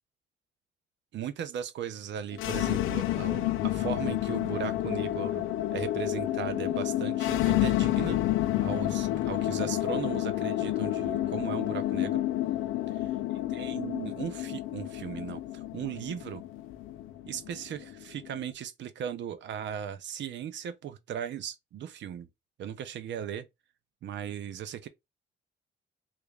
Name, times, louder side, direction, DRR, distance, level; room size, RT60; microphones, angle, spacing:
voice 1, 1.1-5.4 5.7-8.2 8.6-12.2 13.5-16.4 17.3-22.3 22.6-23.5 24.0-24.9, right 9 dB, 65° right, 0.6 m, -37 dB
sound 1, 2.3-18.4, left 14 dB, 90° left, 0.4 m, -30 dB
3.4 x 2.5 x 3.2 m
cardioid pair, 90°, 20 cm